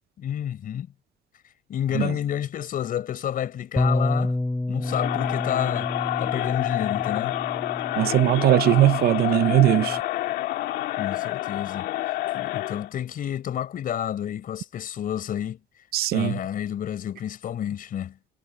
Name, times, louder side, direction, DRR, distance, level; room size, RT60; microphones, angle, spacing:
voice 1, 0.2-0.9 1.7-4.3 4.7-5.9 6.2-7.3 11.0-11.9 12.3-15.6 16.1-18.2, left 10 dB, 55° left, 4.8 m, -30 dB
Bass guitar, 3.8-10.0, left 2 dB, 10° left, 6.7 m, -30 dB
Crowd, 4.8-12.9, left 15 dB, 80° left, 2.1 m, -28 dB
voice 2, 8.0-10.0 15.9-16.3, right 14 dB, 65° right, 0.8 m, -20 dB
cardioid pair, 110°, 17 cm